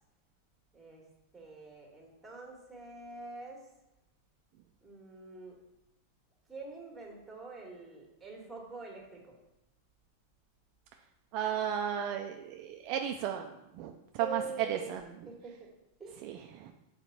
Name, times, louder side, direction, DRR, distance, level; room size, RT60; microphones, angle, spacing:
voice 1, 0.7-1.1 1.3-3.7 4.8-5.6 6.5-9.4 14.2-15.0 15.3-15.7 16.0-16.4, right 3 dB, 10° right, -1 dB, 1.8 m, -45 dB
voice 2, 11.3-13.5 13.7-14.4 14.7-15.0 16.2-16.7, right 9 dB, 45° right, 4 dB, 0.5 m, -34 dB
5.1 x 4.3 x 5.8 m, 0.89 s
supercardioid pair, 140°, 0 cm